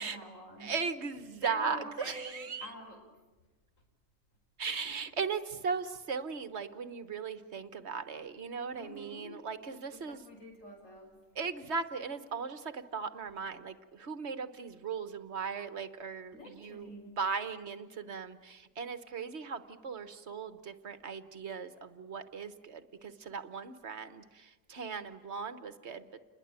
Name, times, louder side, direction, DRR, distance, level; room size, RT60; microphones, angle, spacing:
voice 1, 0.0-0.8 1.3-3.0 4.6-5.0 8.7-9.4 9.9-11.3 16.3-17.2, equal, 90° left, 2 dB, 5.5 m, -47 dB
voice 2, 0.6-2.7 4.6-10.2 11.3-16.9 17.2-26.2, right 5 dB, 60° right, 11 dB, 1.4 m, -38 dB
29.0 x 21.5 x 8.9 m, 1.2 s
omnidirectional pair, 1.3 m